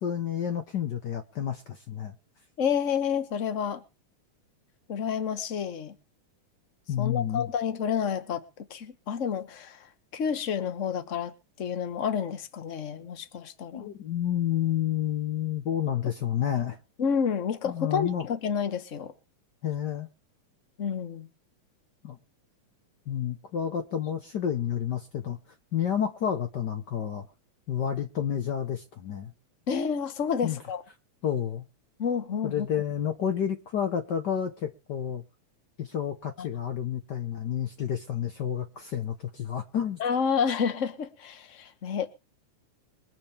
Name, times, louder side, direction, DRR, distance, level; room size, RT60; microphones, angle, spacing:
voice 1, 0.0-2.1 6.9-7.5 13.7-16.8 17.6-18.2 19.6-20.1 22.0-22.2 23.1-25.4 25.7-27.3 27.7-29.3 30.4-30.6 31.2-31.6 32.4-35.2 35.8-40.0, left 9 dB, 85° left, 0.9 m, -30 dB
voice 2, 2.6-3.8 4.9-5.9 7.0-8.4 8.7-9.8 10.1-11.3 11.6-13.9 17.0-19.1 20.8-21.3 29.7-30.8 32.0-32.7 36.4-36.5 40.0-42.1, left 7 dB, 50° left, 0.8 m, -29 dB
23.5 x 8.7 x 3.4 m
omnidirectional pair, 3.5 m